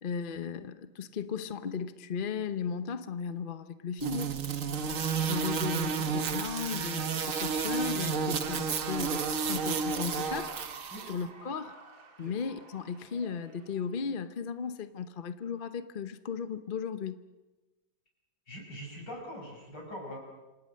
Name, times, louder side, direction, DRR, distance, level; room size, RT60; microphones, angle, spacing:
voice 1, 0.0-4.3 5.3-10.6 11.1-11.8 12.2-17.2, left 6 dB, 45° left, 11 dB, 0.7 m, -36 dB
sound 1, 4.0-11.1, right 6 dB, 45° right, 1.4 m, -31 dB
Cheering / Applause, 7.9-14.5, right 4 dB, 80° right, 3.4 m, -51 dB
voice 2, 18.5-20.2, equal, 60° left, 1 dB, 6.8 m, -43 dB
27.5 x 25.5 x 6.5 m, 1.1 s
omnidirectional pair, 2.1 m